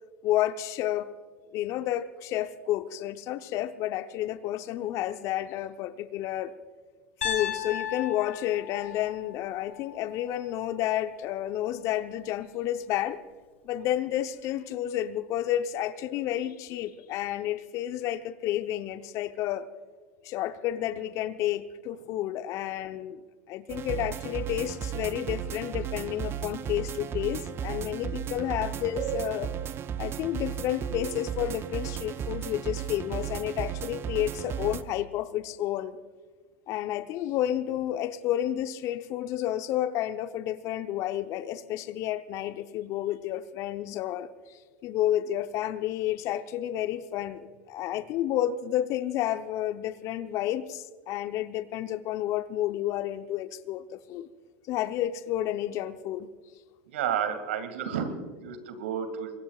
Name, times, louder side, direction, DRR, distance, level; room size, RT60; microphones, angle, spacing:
voice 1, 0.2-1.1 1.5-6.5 7.2-13.2 13.6-19.7 20.2-23.2 23.5-29.5 30.0-36.0 36.7-44.3 44.8-54.3 54.7-56.3, left 12 dB, 50° left, 11 dB, 0.8 m, -30 dB
Piano, 7.2-11.3, left 9 dB, 85° left, 2.4 m, -36 dB
sound 1, 23.7-34.8, right 9 dB, 35° right, 0.8 m, -35 dB
voice 2, 56.9-59.3, right 8 dB, 75° right, 9 dB, 2.2 m, -31 dB
24.5 x 22.0 x 2.4 m, 1.5 s
hypercardioid pair, 80°, 7 cm